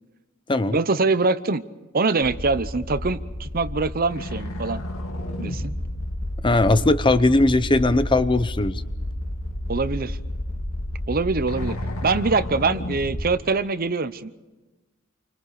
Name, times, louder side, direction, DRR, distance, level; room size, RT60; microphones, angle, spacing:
voice 1, 0.7-1.6 1.9-4.8 5.4-5.7 9.7-10.2 11.1-11.8 12.0-14.3, right 3 dB, 45° right, 14 dB, 0.8 m, -23 dB
sound 1, 2.2-13.2, left 1 dB, 90° left, 2.5 m, -31 dB
voice 2, 6.4-8.8, left 2 dB, 25° left, 12 dB, 0.7 m, -19 dB
29.0 x 25.0 x 4.9 m, 1.1 s
head